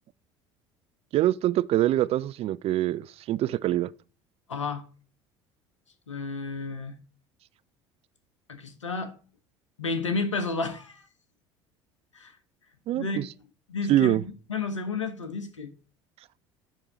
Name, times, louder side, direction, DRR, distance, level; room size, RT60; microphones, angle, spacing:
voice 1, 1.1-3.9 12.9-13.2 13.9-14.2, right 13 dB, 40° right, 0.4 m, -24 dB
voice 2, 4.5-4.8 6.1-7.0 8.5-9.2 9.8-11.1 12.1-12.3 12.9-13.3 13.7-15.7, left 3 dB, 85° left, 1.0 m, -31 dB
10.0 x 3.7 x 4.1 m
figure-of-eight pair, 65°, 15 cm